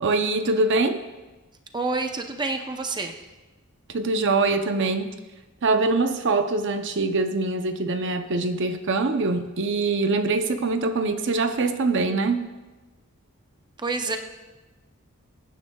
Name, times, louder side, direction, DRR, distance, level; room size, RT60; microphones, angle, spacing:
voice 1, 0.0-1.0 3.9-5.1 5.6-12.5, right 3 dB, 60° right, 7 dB, 0.7 m, -23 dB
voice 2, 1.7-3.2 13.8-14.2, right 3 dB, 20° right, 5 dB, 0.7 m, -28 dB
23.0 x 9.9 x 2.3 m, 1.2 s
head